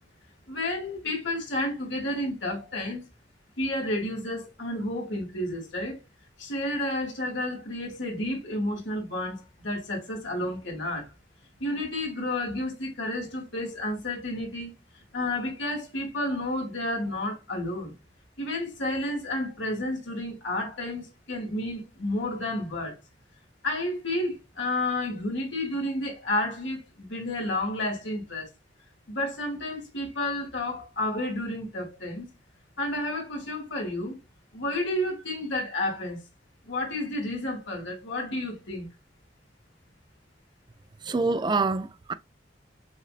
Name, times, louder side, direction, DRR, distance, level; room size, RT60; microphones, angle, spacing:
voice 1, 0.5-3.0 3.6-6.0 6.4-11.1 11.6-14.7 15.1-17.9 18.4-23.0 23.6-28.5 29.1-32.3 32.8-34.1 34.5-36.2 36.6-38.9, left 1 dB, 80° left, 2.1 m, -31 dB
voice 2, 41.0-42.1, right 3 dB, 25° right, 0.3 m, -26 dB
6.3 x 2.5 x 2.4 m
head